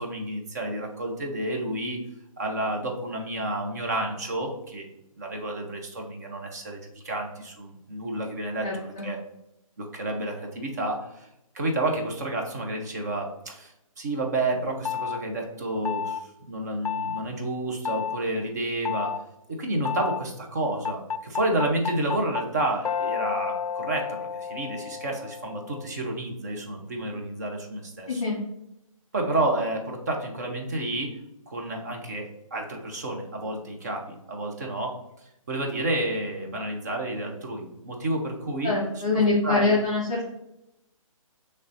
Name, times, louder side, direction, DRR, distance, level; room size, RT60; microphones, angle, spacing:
voice 1, 0.0-2.0 2.4-4.9 5.2-9.2 9.8-11.3 11.5-19.2 19.5-28.2 29.1-31.2 31.5-35.0 35.5-38.8 39.1-39.8, right 2 dB, 30° right, 2 dB, 0.7 m, -30 dB
voice 2, 8.6-9.1 28.1-28.4 38.6-40.3, left 3 dB, 10° left, -8 dB, 0.4 m, -24 dB
sound 1, 14.9-15.2 15.9-16.2 16.9-17.2 17.9-18.2 18.9-19.2 19.9-20.2 20.9-25.9, left 7 dB, 85° left, 0.4 m, -31 dB
6.4 x 3.2 x 2.6 m, 0.84 s
hypercardioid pair, 165°, 18 cm